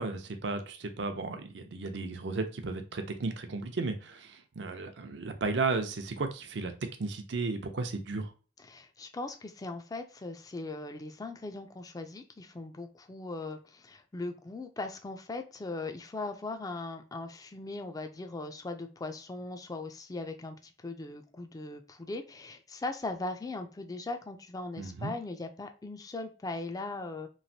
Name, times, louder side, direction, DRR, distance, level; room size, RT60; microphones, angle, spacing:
voice 1, 0.0-6.7 7.0-8.3 24.8-25.1, right 3 dB, 80° right, 0.6 m, -34 dB
voice 2, 8.6-27.3, left 2 dB, 20° left, 0.4 m, -39 dB
3.1 x 2.5 x 2.7 m
head